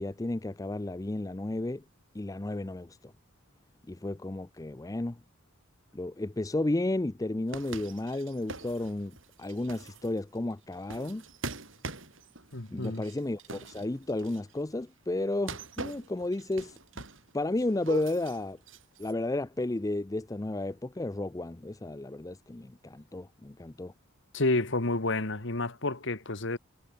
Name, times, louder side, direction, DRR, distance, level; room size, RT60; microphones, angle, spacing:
voice 1, 0.0-1.8 2.1-3.1 3.9-5.2 5.9-11.2 12.7-16.8 17.3-18.6 19.0-23.9, left 2 dB, 15° left, 0.5 m, -33 dB
sound 1, 7.5-14.6 15.3-17.3 17.6-19.1, right 3 dB, 65° right, 6.2 m, -43 dB
voice 2, 12.5-13.0 24.3-26.6, left 2 dB, 60° left, 1.9 m, -30 dB
head